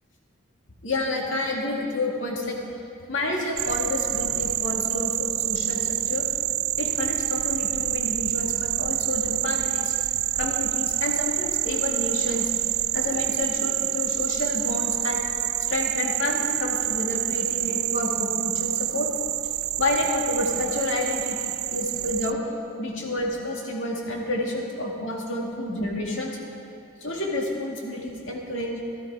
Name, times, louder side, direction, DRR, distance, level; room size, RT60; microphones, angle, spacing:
voice 1, 0.8-2.6 3.1-6.3 6.8-9.9 10.3-12.5 12.9-15.2 15.7-19.1 19.8-22.4 22.8-26.4 27.0-28.8, left 1 dB, 65° left, -1 dB, 2.3 m, -29 dB
sound 1, 3.6-22.3, right 15 dB, 85° right, 0.4 m, -27 dB
15.5 x 13.0 x 4.9 m, 2.8 s
head